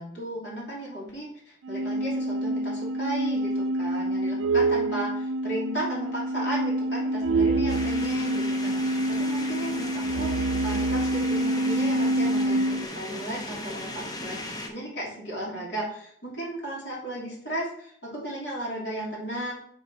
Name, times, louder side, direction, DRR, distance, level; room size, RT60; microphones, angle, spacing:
voice 1, 0.0-14.4 14.7-19.5, right 1 dB, 65° left, -6 dB, 2.9 m, -35 dB
sound 1, 1.7-12.9, right 1 dB, 90° right, 0.3 m, -26 dB
sound 2, 7.7-14.7, left 1 dB, 20° left, 0.7 m, -37 dB
7.7 x 3.5 x 4.2 m, 0.64 s
head